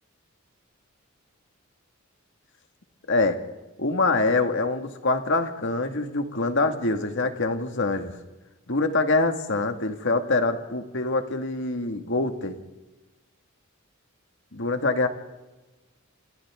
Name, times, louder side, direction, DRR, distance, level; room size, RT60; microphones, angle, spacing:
voice 1, 3.1-3.4 3.8-8.1 8.7-12.6 14.5-15.1, left 3 dB, 60° left, 6 dB, 2.0 m, -25 dB
28.5 x 27.5 x 3.7 m, 1.1 s
head